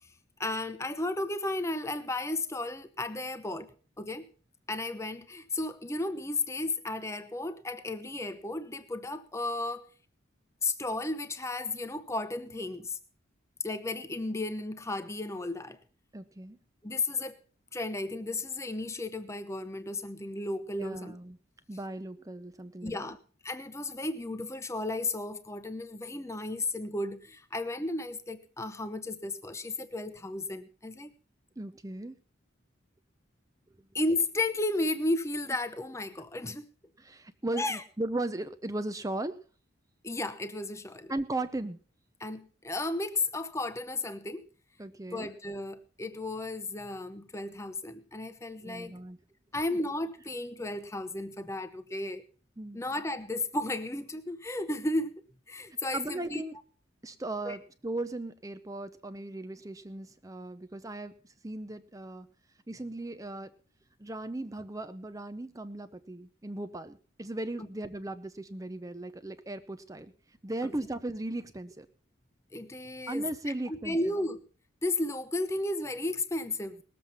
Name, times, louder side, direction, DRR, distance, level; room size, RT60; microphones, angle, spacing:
voice 1, 0.4-3.7 4.0-4.3 4.7-9.9 10.6-13.0 13.6-15.8 16.8-17.3 17.7-21.1 22.8-23.2 23.4-31.1 33.9-36.7 37.5-37.8 40.0-41.1 42.2-44.4 45.1-48.9 49.5-52.2 52.7-55.1 55.5-56.4 57.4-57.6 70.6-70.7 72.5-73.2 73.7-74.4 74.8-76.8, left 2 dB, 15° left, 0.9 m, -34 dB
voice 2, 16.1-16.6 20.8-21.4 21.7-23.2 31.6-32.2 33.8-33.9 37.0-39.4 41.1-41.8 44.8-45.3 48.6-49.2 52.6-52.8 55.9-56.6 57.0-62.3 62.7-63.5 64.0-70.1 70.4-71.9 73.1-74.1, right 2 dB, 15° right, 0.6 m, -37 dB
19.5 x 7.6 x 5.6 m
head